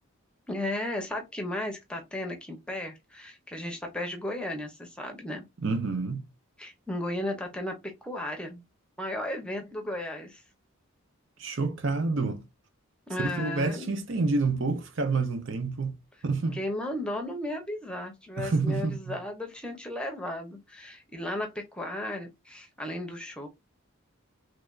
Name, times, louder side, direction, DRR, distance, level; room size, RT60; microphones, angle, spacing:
voice 1, 0.5-5.4 6.6-7.7 8.0-8.6 9.0-10.4 13.1-14.0 16.5-23.5, left 1 dB, 5° left, 0.7 m, -35 dB
voice 2, 5.6-6.2 11.4-12.5 13.2-16.0 16.2-16.6 18.4-19.2, right 3 dB, 60° right, 0.6 m, -28 dB
3.3 x 3.3 x 2.4 m
head